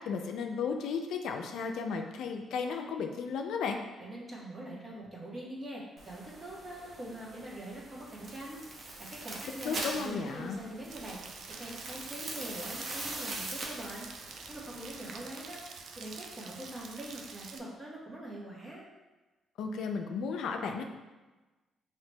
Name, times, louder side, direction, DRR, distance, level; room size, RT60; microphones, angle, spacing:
voice 1, 0.0-3.8 9.6-10.6 19.6-20.8, left 5 dB, 80° left, 4 dB, 0.4 m, -34 dB
voice 2, 4.0-8.6 9.1-11.2 11.6-14.1 14.5-15.6 16.0-18.8, right 1 dB, 30° right, -5 dB, 1.2 m, -43 dB
sound 1, 6.0-15.2, right 2 dB, 50° right, 0.8 m, -43 dB
Rain, 10.9-17.6, right 5 dB, 70° right, 0.4 m, -47 dB
5.7 x 2.8 x 2.2 m, 1.2 s
cardioid pair, 90°, 0 cm